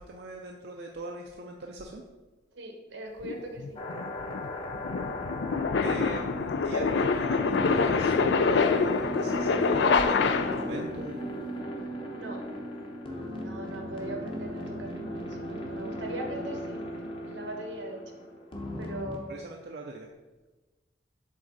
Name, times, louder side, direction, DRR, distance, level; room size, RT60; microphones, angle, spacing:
voice 1, 0.0-2.0 5.8-11.2 19.3-20.1, right 2 dB, 60° right, 0 dB, 0.5 m, -41 dB
voice 2, 2.5-3.8 12.1-12.4 13.3-16.9 17.2-18.2 18.8-19.6, right 1 dB, 80° right, 2 dB, 1.2 m, -40 dB
sound 1, 3.2-10.8, left 4 dB, 70° left, 0.4 m, -26 dB
sound 2, 3.8-19.2, equal, 30° left, 0.9 m, -37 dB
7.4 x 3.7 x 4.0 m, 1.2 s
head